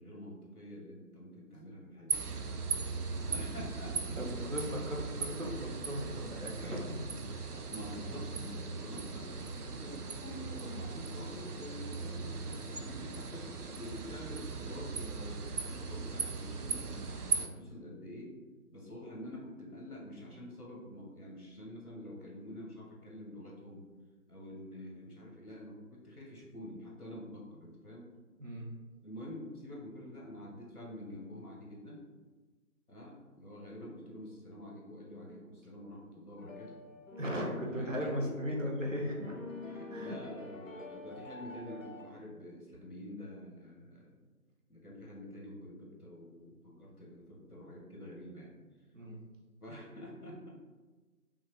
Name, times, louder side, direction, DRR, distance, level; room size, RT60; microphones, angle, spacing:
voice 1, 0.0-2.3 3.3-4.2 7.5-13.5 13.8-18.3 18.7-23.9 24.3-28.1 29.0-32.0 32.9-36.8 37.7-38.5 39.6-44.2 44.7-48.6 49.6-50.5, left 1 dB, 80° left, -2 dB, 1.5 m, -47 dB
sound 1, 2.1-17.5, right 4 dB, 90° right, 0.6 m, -38 dB
voice 2, 4.2-7.0 28.4-28.8 37.2-39.4 39.7-40.2 48.9-49.2, equal, 60° right, -1 dB, 0.9 m, -37 dB
sound 2, 36.4-42.0, left 3 dB, 60° left, 0.8 m, -47 dB
5.6 x 2.5 x 3.1 m, 1.3 s
figure-of-eight pair, 170°, 44 cm